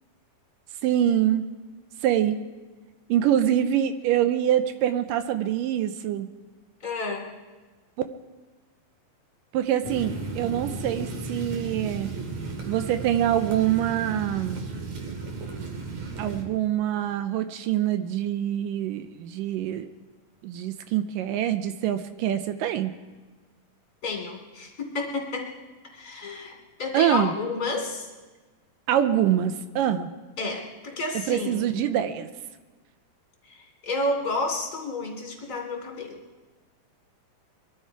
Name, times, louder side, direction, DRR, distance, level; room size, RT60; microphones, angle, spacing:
voice 1, 0.8-1.5 2.0-2.4 3.1-6.3 9.5-12.1 12.7-14.7 16.2-19.9 20.4-22.9 26.9-27.3 28.9-30.1 31.3-32.3, right 11 dB, 80° right, 9 dB, 2.3 m, -25 dB
voice 2, 6.8-7.3 24.0-25.5 25.8-28.1 30.4-31.8 33.5-33.6 33.8-36.2, left 2 dB, 30° left, 1 dB, 2.9 m, -30 dB
sound 1, 9.8-16.4, right 3 dB, 55° right, 2.9 m, -35 dB
22.5 x 13.0 x 4.7 m, 1.3 s
omnidirectional pair, 3.9 m